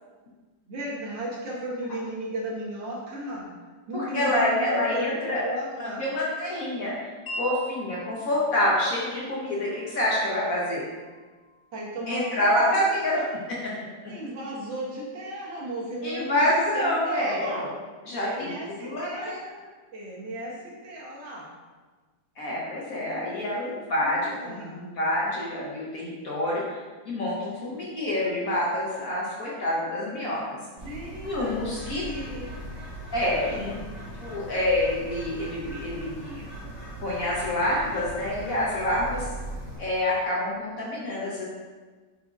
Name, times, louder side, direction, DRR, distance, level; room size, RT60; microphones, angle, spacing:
voice 1, 0.7-3.5 3.9-6.0 11.7-13.3 14.1-17.7 18.2-19.3 19.9-21.5 22.9-24.9 30.6-32.5 33.2-33.7, right 1 dB, 75° right, -4 dB, 1.7 m, -35 dB
voice 2, 3.9-5.5 5.8-10.8 12.1-13.2 14.0-14.1 16.0-17.7 18.0-18.5 18.8-19.5 22.4-26.8 27.0-30.6 31.2-32.0 33.1-33.8 34.2-36.4 37.0-39.2 39.8-41.5, left 1 dB, 55° left, -5 dB, 1.1 m, -27 dB
Wind chime, 7.3-13.3, equal, 35° left, 0.3 m, -44 dB
Bird, 30.8-39.8, right 1 dB, 15° left, 1.2 m, -39 dB
4.9 x 4.1 x 2.4 m, 1.3 s
omnidirectional pair, 2.1 m